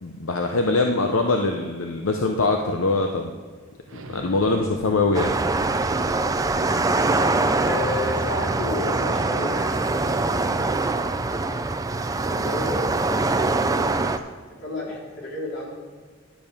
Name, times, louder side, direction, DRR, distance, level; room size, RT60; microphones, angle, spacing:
voice 1, 0.0-3.3 3.9-5.3, left 3 dB, 80° left, 3 dB, 0.7 m, -23 dB
Explosion, 3.9-9.4, right 1 dB, 65° right, 0.9 m, -42 dB
sound 1, 5.1-14.2, right 3 dB, 15° right, 0.4 m, -23 dB
voice 2, 7.6-10.5 12.2-13.9 14.5-15.7, left 2 dB, 55° left, -3 dB, 3.0 m, -32 dB
11.5 x 7.0 x 5.3 m, 1.6 s
head